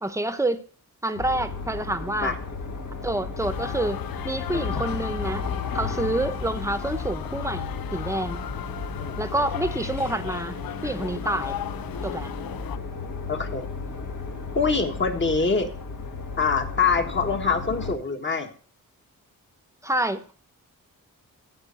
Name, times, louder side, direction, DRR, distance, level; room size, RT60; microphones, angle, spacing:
voice 1, 0.0-0.6 1.0-2.4 3.0-5.5 5.7-8.4 9.2-10.6 10.8-11.6 12.0-12.3 19.8-20.2, right 1 dB, 10° right, 11 dB, 0.9 m, -28 dB
sound 1, 1.2-17.9, left 4 dB, 65° left, 1.6 m, -34 dB
sound 2, 3.4-12.8, left 12 dB, 90° left, 0.6 m, -36 dB
voice 2, 13.3-13.7 14.5-15.7 16.4-18.5, left 5 dB, 35° left, 5 dB, 1.5 m, -24 dB
15.0 x 5.4 x 5.3 m, 0.42 s
wide cardioid pair, 140°, 34 cm